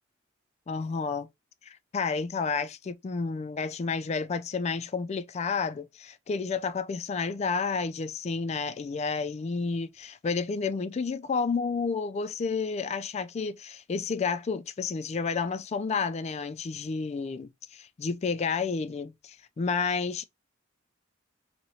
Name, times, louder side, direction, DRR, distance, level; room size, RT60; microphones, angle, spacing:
voice 1, 0.7-1.3 1.9-20.3, left 5 dB, 35° left, 0.3 m, -30 dB
3.0 x 2.8 x 2.7 m
head